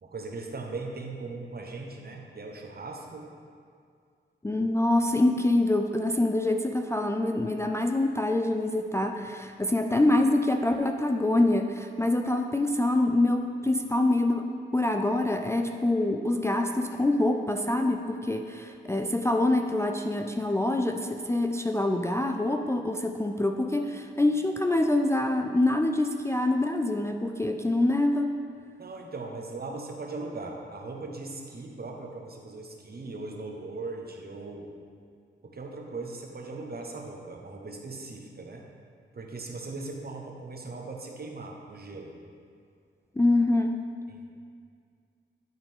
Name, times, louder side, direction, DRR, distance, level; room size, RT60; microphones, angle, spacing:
voice 1, 0.0-3.3 28.8-34.7 35.4-38.6 39.1-42.1 44.1-44.3, right 3 dB, 45° right, 1 dB, 1.1 m, -39 dB
voice 2, 4.4-28.4 43.2-43.7, left 2 dB, 15° left, 4 dB, 0.4 m, -25 dB
12.0 x 4.0 x 3.7 m, 2.2 s
cardioid pair, 60°, 21 cm